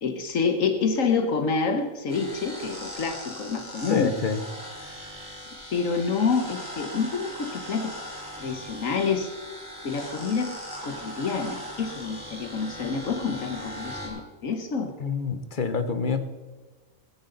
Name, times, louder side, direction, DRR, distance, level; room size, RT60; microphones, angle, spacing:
voice 1, 0.0-4.2 5.7-7.9 8.4-9.3 9.8-10.5 10.8-14.9, left 5 dB, 75° left, 5 dB, 1.5 m, -27 dB
sound 1, 2.1-14.1, equal, 15° left, 4.2 m, -39 dB
voice 2, 3.9-4.4 15.0-16.3, left 5 dB, 40° left, 9 dB, 1.1 m, -27 dB
19.5 x 10.5 x 3.9 m, 1.3 s
omnidirectional pair, 1.4 m